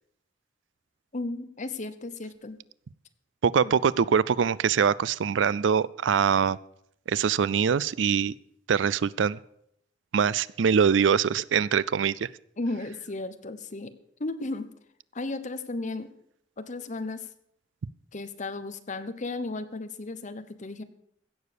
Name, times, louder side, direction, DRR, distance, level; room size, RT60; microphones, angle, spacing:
voice 1, 1.1-2.6 3.6-4.1 12.6-13.9 14.2-14.7 15.1-16.1 16.6-17.3 18.1-20.8, left 2 dB, 40° left, 11 dB, 1.0 m, -35 dB
voice 2, 3.4-6.6 7.1-8.3 8.7-9.4 10.1-12.3, right 7 dB, 75° right, 20 dB, 0.4 m, -23 dB
16.0 x 7.0 x 6.7 m, 0.72 s
head